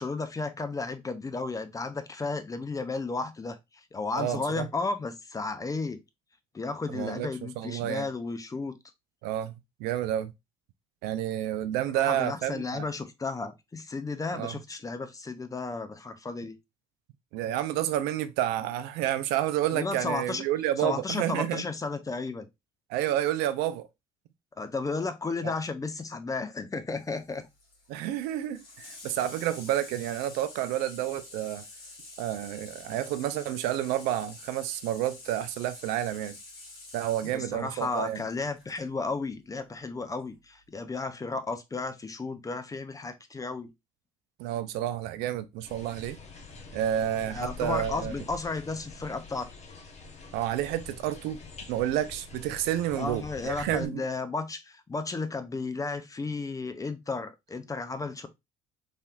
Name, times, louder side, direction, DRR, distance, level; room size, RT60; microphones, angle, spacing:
voice 1, 0.0-3.6 3.9-6.0 6.5-8.8 11.9-16.6 19.7-20.4 20.8-22.5 24.6-27.4 37.2-43.7 47.3-49.5 53.0-58.3, left 3 dB, 20° left, 0.5 m, -33 dB
voice 2, 4.1-4.7 6.9-7.3 7.6-8.0 9.2-9.5 9.8-10.3 11.0-12.9 14.3-14.6 17.3-21.6 22.9-23.9 25.4-25.5 27.9-31.6 32.2-36.4 36.9-38.2 44.4-46.2 46.7-48.1 50.3-51.4 51.7-54.0, right 12 dB, 65° right, 0.4 m, -30 dB
Water tap faucet / Sink (filling or washing), 27.0-38.8 40.1-40.2, left 2 dB, 70° left, 1.5 m, -48 dB
sound 1, 45.6-53.9, left 4 dB, 40° left, 0.9 m, -45 dB
3.2 x 2.8 x 2.4 m
hypercardioid pair, 55°, 18 cm